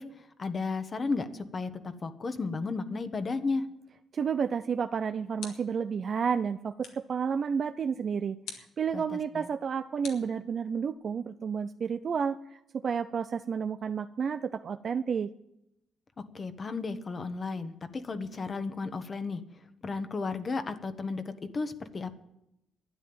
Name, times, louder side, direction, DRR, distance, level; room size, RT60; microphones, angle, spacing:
voice 1, 0.0-3.6 8.9-9.5 16.3-19.4 19.8-21.2 21.5-22.1, left 4 dB, 35° left, 9 dB, 1.3 m, -34 dB
voice 2, 4.1-15.3, right 6 dB, 50° right, 9 dB, 0.5 m, -31 dB
sound 1, 4.8-5.9 6.8-7.2 8.4-8.8 10.0-10.9, left 6 dB, 90° left, 2.4 m, -46 dB
12.5 x 9.6 x 8.8 m, 0.83 s
cardioid pair, 90°, 0 cm